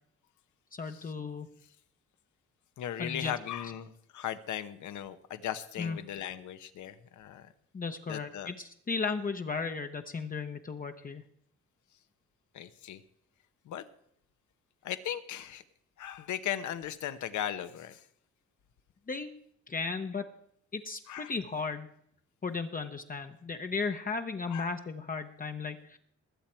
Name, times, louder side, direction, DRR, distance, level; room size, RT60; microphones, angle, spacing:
voice 1, 0.7-1.5 3.0-3.3 5.8-6.0 7.7-11.2 19.1-19.3 19.7-20.3 20.7-21.9 22.4-26.0, left 4 dB, 30° left, 6 dB, 0.9 m, -35 dB
voice 2, 2.8-7.5 8.1-8.5 12.5-13.0 13.6-13.8 14.8-15.6 16.0-18.0 21.1-21.3 24.5-24.7, left 10 dB, 75° left, 11 dB, 1.0 m, -37 dB
20.5 x 7.5 x 4.5 m, 0.70 s
cardioid pair, 90°, 30 cm